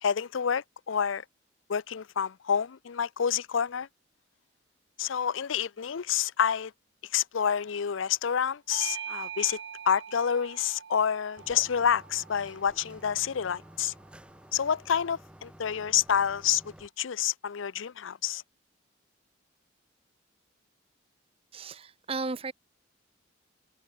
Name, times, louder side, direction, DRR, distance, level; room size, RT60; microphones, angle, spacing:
voice 1, 0.0-1.2 1.7-3.9 5.0-6.7 7.1-9.6 9.9-13.9 14.5-18.4, left 8 dB, 75° left, 0.5 m, -28 dB
Bell / Doorbell, 8.7-13.5, right 9 dB, 60° right, 0.5 m, -43 dB
sound 1, 11.4-16.9, equal, 5° right, 2.9 m, -52 dB
voice 2, 21.5-22.5, right 3 dB, 30° right, 0.8 m, -34 dB
head